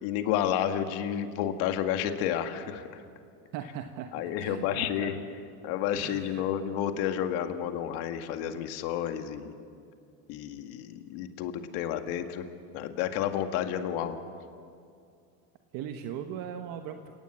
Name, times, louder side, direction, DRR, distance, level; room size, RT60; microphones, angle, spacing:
voice 1, 0.0-3.0 4.1-5.2 5.6-9.5 10.3-12.5 12.7-14.2, left 10 dB, 55° left, 6 dB, 2.0 m, -31 dB
voice 2, 3.5-5.2 6.0-6.5 15.7-17.1, right 9 dB, 45° right, 6 dB, 1.4 m, -39 dB
29.5 x 18.5 x 7.6 m, 2.3 s
supercardioid pair, 135°, 47 cm